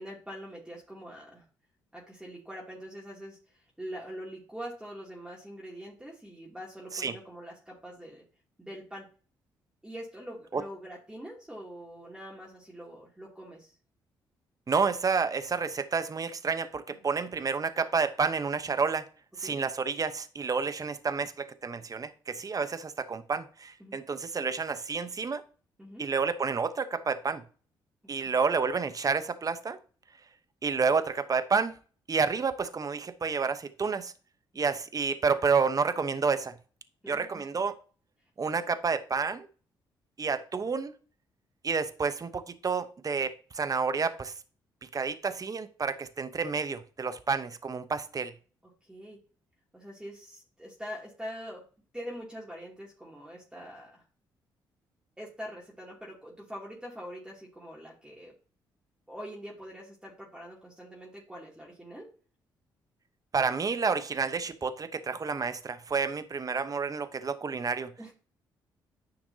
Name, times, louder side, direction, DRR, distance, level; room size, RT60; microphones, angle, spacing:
voice 1, 0.0-1.5 1.9-8.2 8.6-9.1 9.8-13.8 16.9-17.0 19.4-19.6 23.8-24.0 25.8-26.0 28.2-28.4 34.5-34.6 37.0-37.5 48.6-49.2 49.7-51.6 51.9-54.0 55.2-58.3 59.1-62.1 68.0-68.1, equal, 10° right, 2.7 m, -44 dB
voice 2, 14.7-19.0 19.4-25.4 26.0-27.4 28.1-29.8 30.6-31.7 32.1-34.1 34.6-36.6 37.1-37.7 38.4-39.5 40.2-40.9 41.6-44.3 44.9-48.3 63.3-67.9, right 5 dB, 40° right, 0.9 m, -29 dB
10.0 x 5.8 x 2.8 m
supercardioid pair, 50°, 10 cm